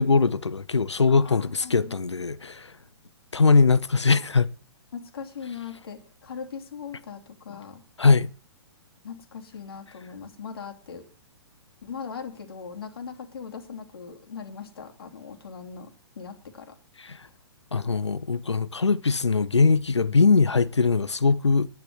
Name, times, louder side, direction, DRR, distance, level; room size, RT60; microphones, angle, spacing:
voice 1, 0.0-2.7 3.3-4.5 8.0-8.3 17.1-17.2 17.7-21.7, left 4 dB, 80° left, 0.7 m, -21 dB
voice 2, 1.1-2.0 4.9-7.8 9.0-11.1 11.8-16.7, left 6 dB, 60° left, 3.0 m, -40 dB
10.5 x 10.5 x 7.7 m
figure-of-eight pair, 120°, 14 cm